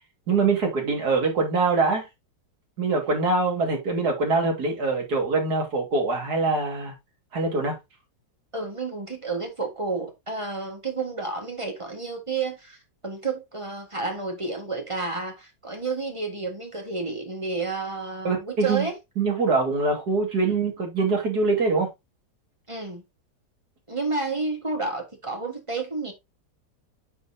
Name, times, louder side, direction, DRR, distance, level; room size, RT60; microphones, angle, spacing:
voice 1, 0.3-2.1 2.8-6.9 7.3-7.8 18.2-18.9 19.2-21.9, right 3 dB, 65° right, 2.6 m, -23 dB
voice 2, 8.5-12.8 13.0-19.0 22.7-23.0 23.9-26.1, right 3 dB, 20° right, 1.5 m, -30 dB
9.5 x 4.0 x 2.7 m
omnidirectional pair, 1.9 m